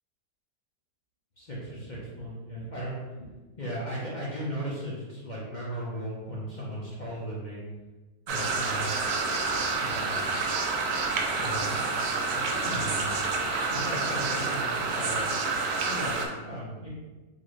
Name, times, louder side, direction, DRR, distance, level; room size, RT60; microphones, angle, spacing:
voice 1, 1.4-7.6 8.3-8.9 9.8-10.2 11.4-11.9 12.3-13.2 13.7-15.2 15.8-16.9, equal, 50° left, -7 dB, 0.5 m, -36 dB
sound 1, 8.3-16.3, right 3 dB, 70° right, 1.0 m, -28 dB
4.0 x 2.6 x 3.1 m, 1.2 s
omnidirectional pair, 1.9 m